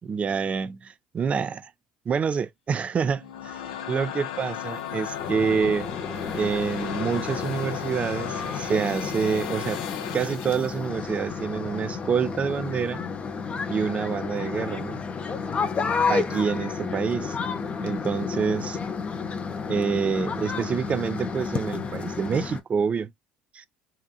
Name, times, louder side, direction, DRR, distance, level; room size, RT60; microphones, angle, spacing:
voice 1, 0.0-1.7 2.1-3.6 3.9-5.9 6.3-9.8 10.1-13.0 13.7-15.0 16.1-17.4 17.8-18.8 19.7-23.1 23.5-23.7, right 6 dB, 35° right, 0.4 m, -27 dB
sound 1, 3.0-10.8, left 10 dB, 90° left, 0.5 m, -35 dB
sound 2, 5.2-22.6, left 5 dB, 35° left, 0.5 m, -31 dB
2.8 x 2.5 x 2.3 m
hypercardioid pair, 75°, 4 cm